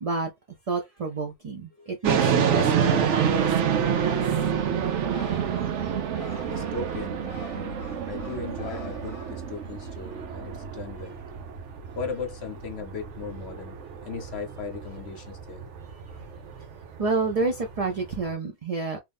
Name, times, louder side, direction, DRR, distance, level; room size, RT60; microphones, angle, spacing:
voice 1, 0.0-0.3 0.7-4.2 7.2-7.4 17.0-19.0, right 4 dB, 40° right, 0.7 m, -29 dB
sound 1, 2.0-18.3, right 8 dB, 80° right, 1.0 m, -28 dB
Bird, 2.8-10.2, left 4 dB, 40° left, 0.6 m, -47 dB
voice 2, 6.5-7.2 7.5-7.8 8.1-11.2 11.9-13.8 14.0-15.7, left 4 dB, 65° left, 1.0 m, -37 dB
3.0 x 2.6 x 3.5 m
omnidirectional pair, 1.2 m